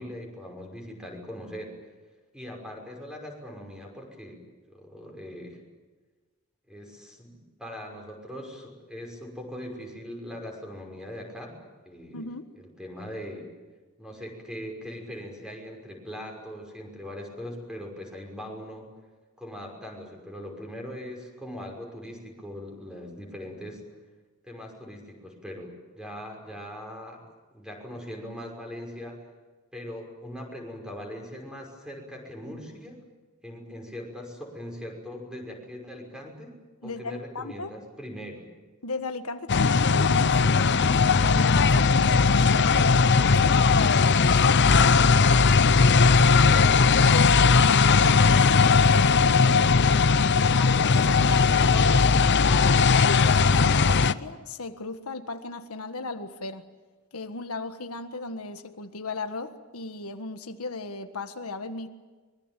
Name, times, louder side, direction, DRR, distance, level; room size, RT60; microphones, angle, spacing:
voice 1, 0.0-1.8 2.3-4.4 4.7-5.6 6.7-11.6 11.9-12.3 12.6-13.5 14.0-18.9 19.4-23.8 24.4-27.2 27.5-29.2 29.7-33.0 33.4-36.6 36.8-38.4, equal, 5° right, 1 dB, 5.9 m, -40 dB
voice 2, 12.1-12.5 36.8-37.7 38.8-40.6 41.2-45.6 46.5-49.7 50.6-52.4 52.9-56.6 57.1-61.9, left 3 dB, 90° left, 7 dB, 1.6 m, -35 dB
sound 1, 39.5-54.1, left 4 dB, 55° left, 0.7 m, -19 dB
25.0 x 22.5 x 9.2 m, 1.3 s
head